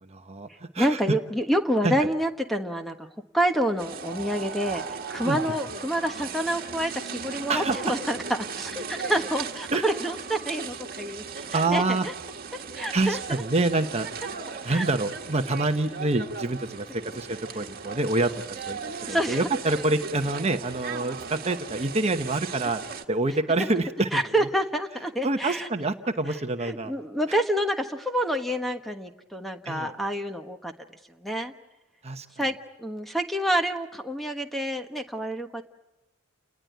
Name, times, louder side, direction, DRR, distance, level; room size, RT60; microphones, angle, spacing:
voice 1, 0.0-0.5 0.7-1.1 1.8-2.1 5.2-5.4 7.5-8.0 9.7-9.9 11.5-12.1 12.9-14.1 14.6-18.8 19.1-22.8 23.1-24.5 25.2-26.9 29.6-29.9 32.0-32.3, right 2 dB, 30° right, 6 dB, 1.0 m, -27 dB
voice 2, 0.8-3.0 3.3-4.8 5.1-11.2 11.5-12.1 12.5-13.4 14.7-14.8 19.1-19.4 23.6-23.7 24.1-25.7 26.6-30.7 31.2-31.5 32.4-35.6, equal, ahead, 5 dB, 1.3 m, -28 dB
sound 1, 3.8-23.0, right 5 dB, 45° right, 1.7 m, -37 dB
29.5 x 20.0 x 9.3 m, 1.0 s
head